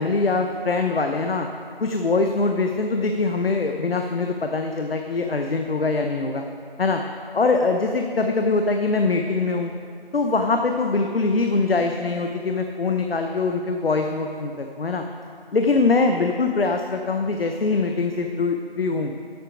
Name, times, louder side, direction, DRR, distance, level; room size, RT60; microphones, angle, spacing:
voice 1, 0.0-1.5 1.8-6.4 6.8-7.0 7.3-9.7 10.1-15.1 15.5-19.1, left 3 dB, 70° left, 4 dB, 0.7 m, -23 dB
9.9 x 8.1 x 5.1 m, 2.3 s
figure-of-eight pair, 175°, 31 cm